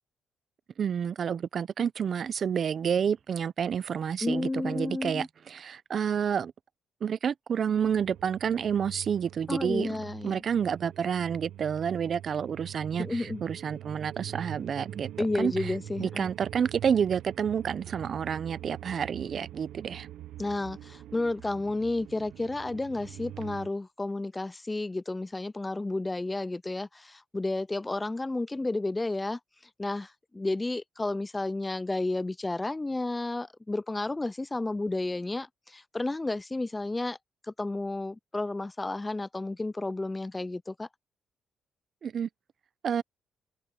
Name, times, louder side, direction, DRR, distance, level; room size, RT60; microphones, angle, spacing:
voice 1, 0.8-6.5 7.0-9.9 10.2-15.1 15.4-15.5 16.0-20.1 42.0-42.3 42.8-43.0, right 7 dB, 55° right, 0.6 m, -29 dB
voice 2, 4.2-5.3 9.5-10.4 13.0-13.4 15.2-16.3 20.4-29.4 29.8-37.2 37.5-40.9, left 2 dB, 15° left, 0.3 m, -32 dB
sound 1, 7.7-23.7, right 12 dB, 80° right, 0.8 m, -44 dB
cardioid pair, 90°, 0 cm